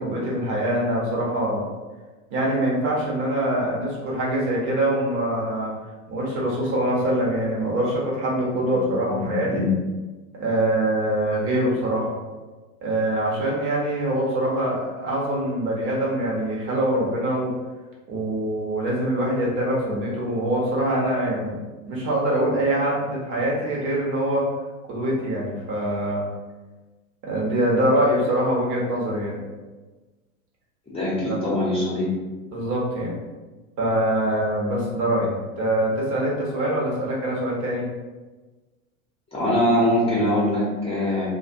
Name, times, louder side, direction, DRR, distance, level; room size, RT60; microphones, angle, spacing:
voice 1, 0.0-1.6 2.3-5.7 6.1-9.6 10.3-12.1 12.8-17.5 18.1-21.5 21.8-24.5 24.9-26.2 27.2-29.4 31.3-31.4 32.5-33.1 33.8-37.9, right 1 dB, 45° right, -4 dB, 1.1 m, -24 dB
voice 2, 9.1-9.7 30.9-32.1 39.3-41.3, left 1 dB, 15° left, -7 dB, 0.8 m, -23 dB
2.5 x 2.4 x 2.6 m, 1.2 s
hypercardioid pair, 90°, 43 cm